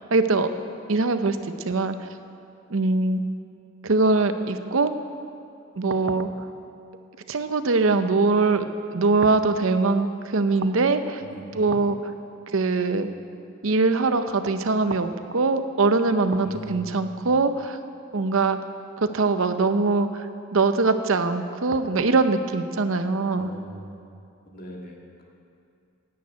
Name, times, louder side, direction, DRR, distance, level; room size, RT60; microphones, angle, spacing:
voice 1, 0.1-0.5 0.9-2.1 2.7-3.2 3.8-4.9 5.7-6.3 7.3-11.2 11.5-12.0 12.5-13.1 13.6-17.8 18.1-18.6 19.0-23.5, right 3 dB, 70° right, 9 dB, 0.7 m, -22 dB
voice 2, 11.2-11.8 16.4-17.4 23.4-24.1 24.5-25.2, equal, 40° left, -1 dB, 1.8 m, -41 dB
10.5 x 9.5 x 8.3 m, 2.5 s
head